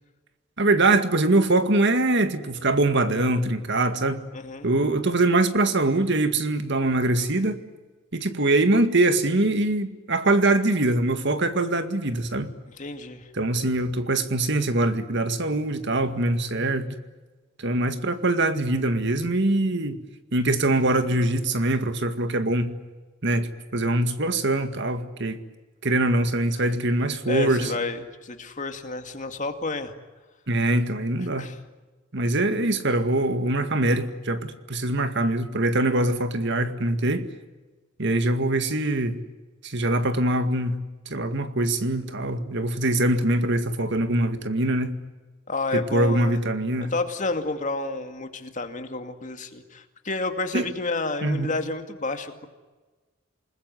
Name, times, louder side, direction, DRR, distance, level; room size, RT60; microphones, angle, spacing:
voice 1, 0.6-4.2 4.6-7.6 8.1-12.5 13.3-16.9 17.6-20.0 20.3-22.7 23.2-25.4 25.8-27.7 30.5-31.5 32.1-37.3 38.0-39.2 39.6-45.0 45.7-46.9 50.5-50.7 51.2-51.5, right 2 dB, 60° right, 2.0 m, -23 dB
voice 2, 4.3-4.7 12.8-13.3 27.3-29.9 31.2-31.6 45.5-46.4 46.8-52.5, left 3 dB, 40° left, 2.4 m, -30 dB
28.5 x 20.5 x 9.7 m
head